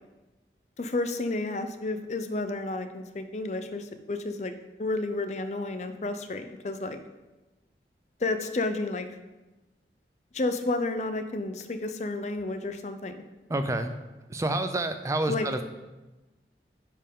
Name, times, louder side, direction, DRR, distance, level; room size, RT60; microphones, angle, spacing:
voice 1, 0.8-4.5 4.8-7.0 8.2-9.1 10.3-13.2 15.3-15.5, left 2 dB, 40° left, 8 dB, 0.5 m, -31 dB
voice 2, 13.5-14.0 14.3-15.6, right 2 dB, 15° right, 8 dB, 0.4 m, -28 dB
10.0 x 4.5 x 3.7 m, 1.1 s
head